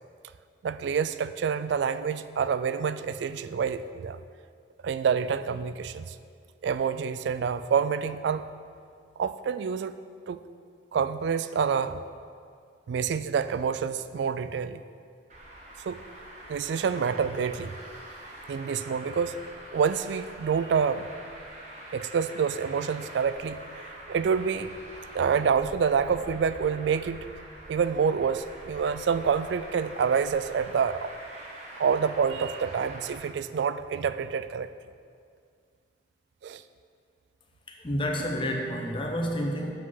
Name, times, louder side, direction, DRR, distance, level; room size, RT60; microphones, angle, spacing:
voice 1, 0.6-4.2 4.8-6.2 6.6-8.5 9.2-9.9 10.3-10.4 10.9-12.0 12.9-14.8 15.8-16.0 16.5-17.7 18.5-19.4 19.7-21.1 21.9-23.6 24.1-24.7 25.1-27.3 27.7-31.1 31.8-34.7 36.4-36.6, right 6 dB, 65° right, 13 dB, 0.3 m, -27 dB
Traffic noise roadway noise, 15.3-33.2, right 1 dB, 40° right, 1.2 m, -45 dB
voice 2, 37.8-39.7, equal, 25° left, 1 dB, 0.8 m, -29 dB
8.0 x 5.0 x 5.6 m, 2.2 s
head